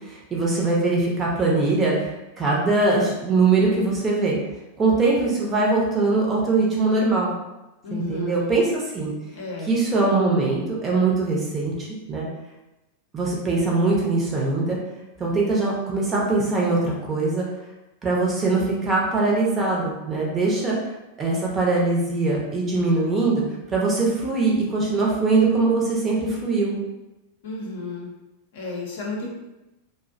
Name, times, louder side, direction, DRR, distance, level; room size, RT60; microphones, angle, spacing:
voice 1, 0.1-2.1 2.4-4.3 4.8-7.3 7.9-9.1 9.7-12.3 13.1-14.8 15.2-17.5 18.0-20.8 21.2-23.4 23.7-26.8, right 3 dB, 20° right, -4 dB, 0.6 m, -22 dB
voice 2, 7.8-8.5 9.3-9.7 27.4-28.1 28.5-29.3, left 3 dB, 55° left, -2 dB, 0.6 m, -32 dB
2.4 x 2.0 x 2.4 m, 0.98 s
figure-of-eight pair, 90°, 0 cm